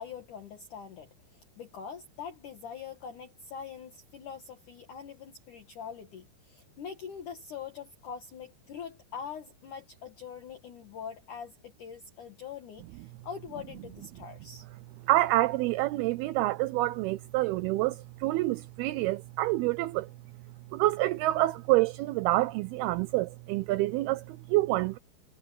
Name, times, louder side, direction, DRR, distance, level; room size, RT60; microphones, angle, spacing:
voice 1, 0.0-14.7, left 7 dB, 55° left, 2.6 m, -43 dB
voice 2, 15.1-20.1 20.7-25.0, right 18 dB, 85° right, 2.2 m, -27 dB
omnidirectional pair, 5.1 m